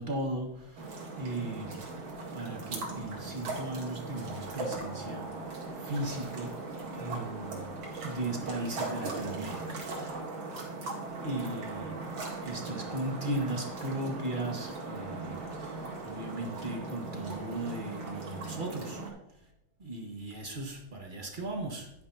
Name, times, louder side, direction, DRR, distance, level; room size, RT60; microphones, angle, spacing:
voice 1, 0.0-1.8 2.1-5.5 5.8-6.6 7.0-7.7 8.0-10.2 11.2-12.0 12.4-19.0 19.8-21.9, right 1 dB, 25° right, 1 dB, 1.4 m, -37 dB
sound 1, 0.8-19.1, right 3 dB, 70° right, 2.7 m, -39 dB
10.0 x 9.6 x 2.8 m, 0.85 s
omnidirectional pair, 2.3 m